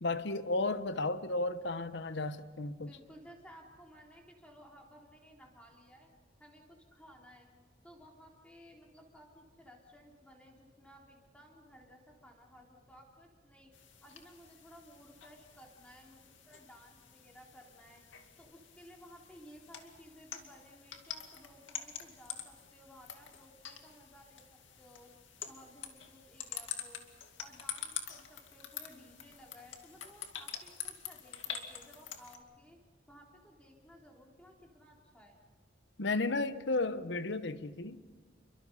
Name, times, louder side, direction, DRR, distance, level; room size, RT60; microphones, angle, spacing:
voice 1, 0.0-2.9 36.0-38.0, left 2 dB, 65° left, 1.0 m, -33 dB
voice 2, 2.8-6.1 6.4-7.5 7.8-13.7 14.0-18.0 18.4-25.1 25.5-27.0 27.4-32.8 33.1-35.4, equal, 5° left, 3.8 m, -57 dB
sound 1, 13.7-32.4, left 8 dB, 80° left, 2.3 m, -47 dB
29.0 x 23.5 x 5.6 m
head